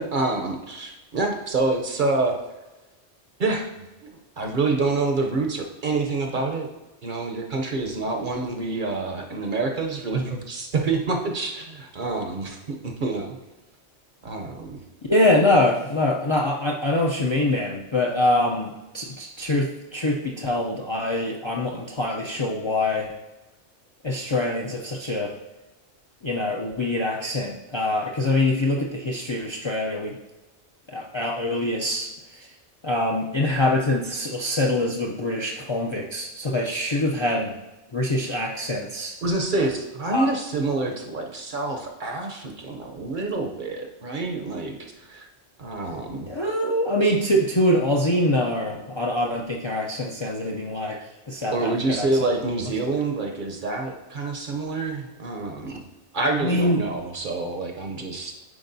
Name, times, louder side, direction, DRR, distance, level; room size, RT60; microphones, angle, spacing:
voice 1, 0.0-2.4 3.4-4.1 4.4-6.7 7.0-13.4 14.2-14.8 39.2-44.8 45.1-45.3 45.6-46.3 50.8-51.0 51.5-55.8 56.1-58.4, right 3 dB, 50° right, 2 dB, 0.8 m, -27 dB
voice 2, 15.1-23.1 24.0-25.3 26.2-30.2 30.9-32.5 32.8-37.5 37.9-39.1 40.1-40.3 46.3-51.0 51.3-52.1 55.7-55.8 56.4-56.8, left 1 dB, 40° left, -1 dB, 0.4 m, -24 dB
9.7 x 4.4 x 2.7 m, 1.1 s
omnidirectional pair, 1.2 m